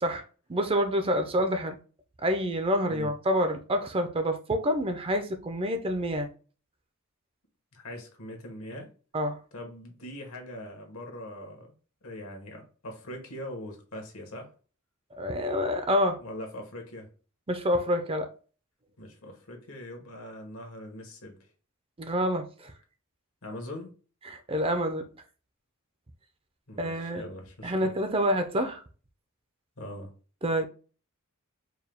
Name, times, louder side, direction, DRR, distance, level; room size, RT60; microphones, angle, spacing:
voice 1, 0.5-1.8 2.2-6.3 9.1-9.4 15.2-16.2 17.5-18.3 22.0-22.7 24.3-25.0 26.8-27.2 27.6-28.8 30.4-30.6, equal, 25° right, 0.5 m, -27 dB
voice 2, 7.7-8.9 9.5-11.7 12.0-14.5 16.2-17.1 19.0-21.5 23.4-23.9 26.7-27.9 29.8-30.1, left 1 dB, 75° left, 1.3 m, -42 dB
4.6 x 2.3 x 3.4 m
head